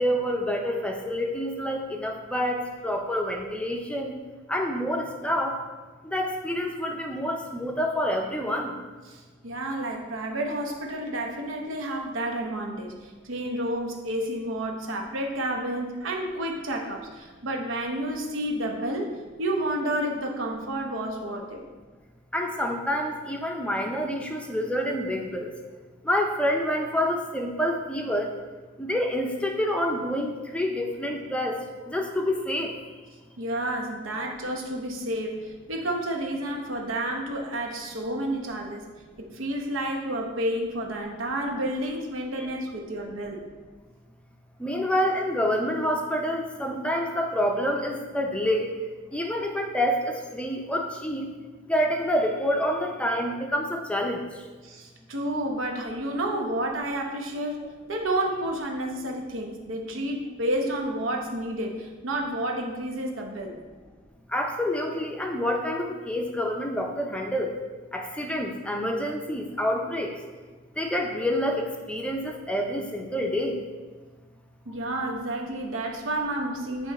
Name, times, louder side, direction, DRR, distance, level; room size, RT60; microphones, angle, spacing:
voice 1, 0.0-4.1 4.5-5.6 6.0-8.7 22.3-25.5 26.0-28.3 28.8-31.6 31.9-32.7 42.4-42.5 44.6-48.7 49.1-51.3 51.7-54.2 64.3-67.5 67.9-70.1 70.8-73.6, equal, 5° left, 2 dB, 0.5 m, -27 dB
voice 2, 9.1-21.6 33.4-38.8 39.2-43.4 54.6-63.5 74.6-76.9, right 1 dB, 85° right, 2 dB, 0.9 m, -30 dB
8.0 x 3.1 x 4.1 m, 1.4 s
head